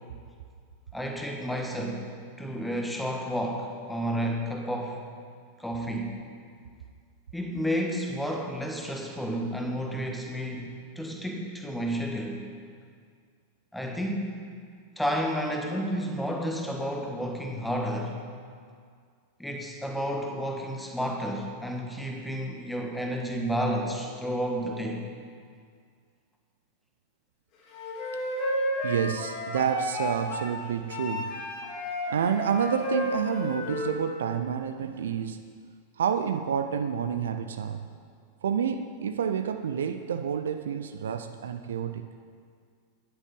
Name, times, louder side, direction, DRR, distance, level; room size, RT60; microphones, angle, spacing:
voice 1, 0.9-2.1 2.4-5.0 5.6-6.2 7.3-12.4 13.7-14.2 15.0-18.2 19.4-25.0, equal, 5° left, 1 dB, 1.4 m, -31 dB
Wind instrument woodwind instrument, 27.7-30.5 30.9-34.0, left 1 dB, 40° left, 2.8 m, -32 dB
voice 2, 28.8-31.3 32.1-35.4 36.0-37.9 38.4-42.1, right 7 dB, 65° right, 8 dB, 0.5 m, -29 dB
9.9 x 8.1 x 5.3 m, 2.1 s
figure-of-eight pair, 90°, 0 cm